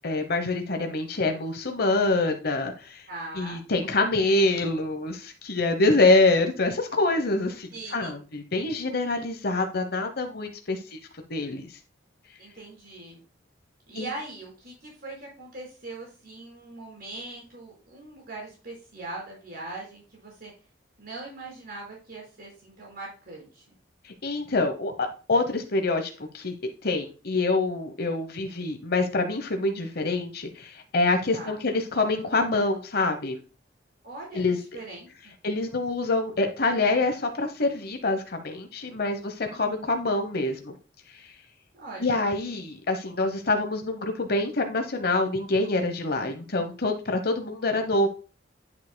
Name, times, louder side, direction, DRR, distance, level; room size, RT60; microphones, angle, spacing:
voice 1, 0.0-3.1 3.3-11.0 11.3-11.8 13.9-14.1 24.0-26.5 26.8-33.4 34.3-34.6 35.4-40.7 41.1-41.3 42.0-48.1, left 2 dB, 55° left, 6 dB, 1.0 m, -26 dB
voice 2, 3.1-3.6 7.7-8.2 12.4-13.2 13.9-20.5 21.0-23.6 31.3-31.6 34.0-34.4 34.7-35.3 39.5-39.9 41.7-42.2, right 2 dB, 55° right, -3 dB, 4.8 m, -41 dB
11.0 x 7.2 x 2.2 m, 0.35 s
head